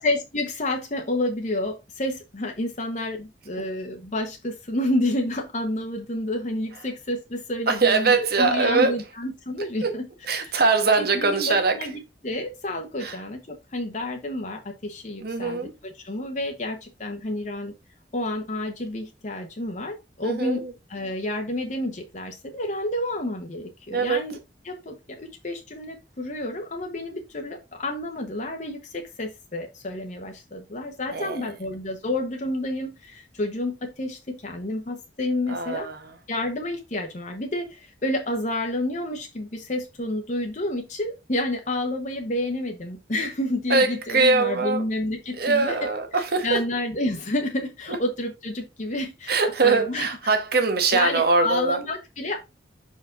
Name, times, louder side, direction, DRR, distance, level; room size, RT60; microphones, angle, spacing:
voice 1, 0.0-10.6 11.0-17.7 18.1-24.4 24.6-35.9 36.3-50.1 50.9-52.4, left 1 dB, 45° left, 1.0 m, -30 dB
voice 2, 7.7-8.9 9.8-9.9 10.3-11.7 13.0-13.2 15.2-15.7 20.2-20.7 23.9-24.2 31.1-31.4 35.5-36.1 43.7-44.8 45.4-46.6 49.3-51.8, right 4 dB, 60° right, 1.3 m, -22 dB
6.0 x 4.6 x 3.7 m
head